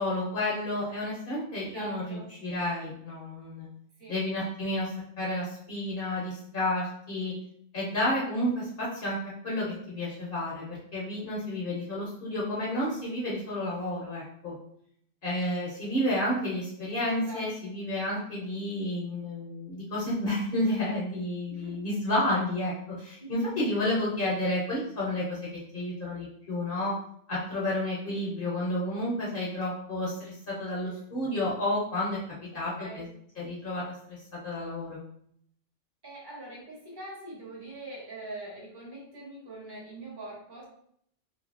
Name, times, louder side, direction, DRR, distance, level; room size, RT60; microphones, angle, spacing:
voice 1, 0.0-3.7 4.1-7.3 7.7-9.2 9.4-14.5 15.2-25.4 25.7-26.9 27.3-33.0 33.4-35.0, left 1 dB, 55° left, -5 dB, 0.8 m, -31 dB
voice 2, 1.6-2.3 4.0-4.2 17.1-17.7 21.5-21.8 23.2-23.5 32.5-33.0 36.0-40.6, right 2 dB, 25° right, -3 dB, 0.7 m, -43 dB
2.7 x 2.6 x 2.5 m, 0.68 s
omnidirectional pair, 1.2 m